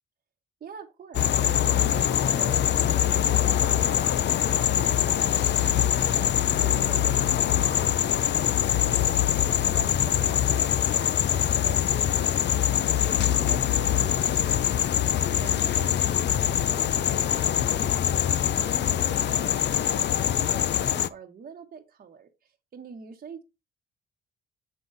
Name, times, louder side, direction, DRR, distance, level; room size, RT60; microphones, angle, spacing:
voice 1, 0.6-5.7 6.0-9.1 9.6-14.8 15.2-18.1 18.5-23.4, right 6 dB, 45° right, 1.1 m, -46 dB
sound 1, 1.1-21.1, left 10 dB, 60° left, 0.5 m, -23 dB
sound 2, 13.0-15.1, left 4 dB, 40° left, 2.1 m, -44 dB
7.4 x 4.0 x 3.8 m
cardioid pair, 105°, 21 cm